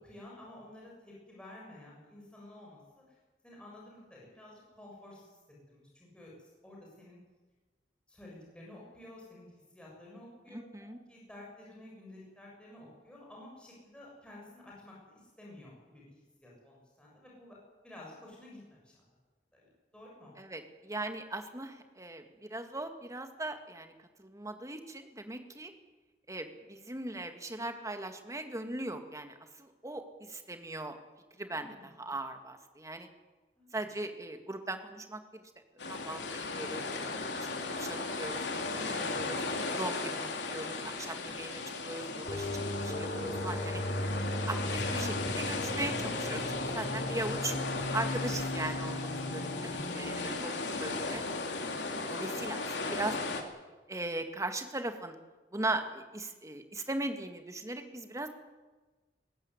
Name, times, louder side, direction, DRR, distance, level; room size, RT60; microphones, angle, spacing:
voice 1, 0.0-3.0 3.4-5.4 5.7-6.3 6.6-7.2 8.1-9.5 9.7-16.0 16.4-17.6 17.8-19.0 19.5-20.3 31.5-32.1 33.6-33.8 50.3-50.8, left 1 dB, 5° left, -4 dB, 7.2 m, -52 dB
voice 2, 10.5-11.0 20.4-23.9 24.2-25.7 26.3-31.0 31.4-33.1 33.7-35.4 35.8-36.8 37.4-38.4 38.7-39.4 39.8-43.8 44.5-44.6 44.9-47.5 47.9-51.3 52.1-53.2 53.9-55.2 55.5-58.3, right 2 dB, 20° right, 7 dB, 2.1 m, -39 dB
sound 1, 35.8-53.4, left 3 dB, 75° left, 3.0 m, -36 dB
sound 2, 42.3-50.3, left 1 dB, 30° left, 3.6 m, -37 dB
20.5 x 16.5 x 9.8 m, 1.2 s
head